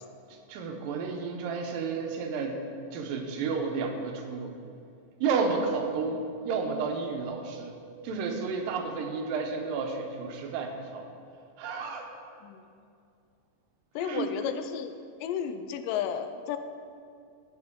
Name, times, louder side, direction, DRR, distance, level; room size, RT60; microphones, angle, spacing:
voice 1, 0.5-2.6 2.9-4.6 5.2-11.1 11.6-12.1 14.0-14.4, right 4 dB, 90° right, 3 dB, 2.6 m, -31 dB
voice 2, 14.0-14.9 15.2-16.6, left 8 dB, 85° left, 9 dB, 2.2 m, -32 dB
15.0 x 5.3 x 3.6 m, 2.4 s
omnidirectional pair, 3.9 m